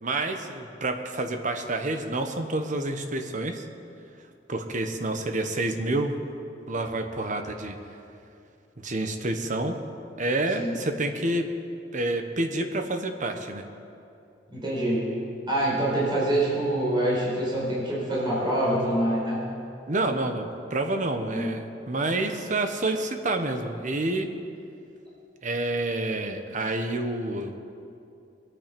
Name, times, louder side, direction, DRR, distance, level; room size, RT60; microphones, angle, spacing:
voice 1, 0.0-3.6 4.5-6.2 6.7-7.8 8.8-9.8 10.2-11.5 11.9-13.6 19.9-24.3 25.4-27.6, right 2 dB, 45° right, 6 dB, 1.1 m, -28 dB
voice 2, 14.5-15.0 15.5-19.4 21.3-21.6, right 1 dB, 25° right, -7 dB, 4.5 m, -25 dB
22.0 x 8.9 x 5.3 m, 2.6 s
head